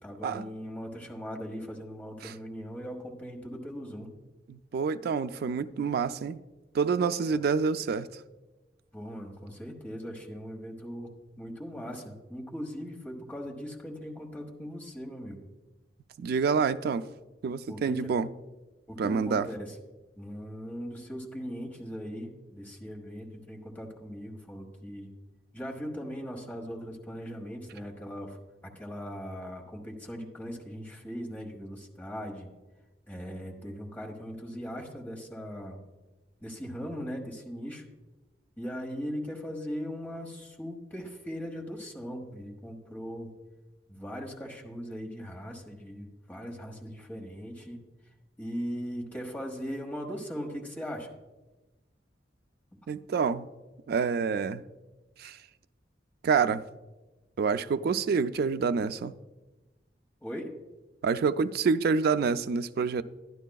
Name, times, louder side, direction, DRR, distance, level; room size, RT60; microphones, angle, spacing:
voice 1, 0.0-4.2 8.9-11.1 11.4-15.4 17.7-18.1 18.9-19.7 20.2-25.1 25.5-28.4 28.7-32.5 33.1-35.8 36.4-37.8 38.6-43.3 43.9-47.8 48.4-51.1 60.2-60.5, equal, 10° left, 1.0 m, -39 dB
voice 2, 4.5-6.4 6.7-8.1 16.2-17.1 17.4-18.3 19.0-19.5 52.9-53.5 53.9-54.6 55.2-55.4 56.2-56.6 57.4-59.1 61.0-63.0, right 5 dB, 60° right, 0.3 m, -27 dB
11.5 x 11.0 x 2.3 m
head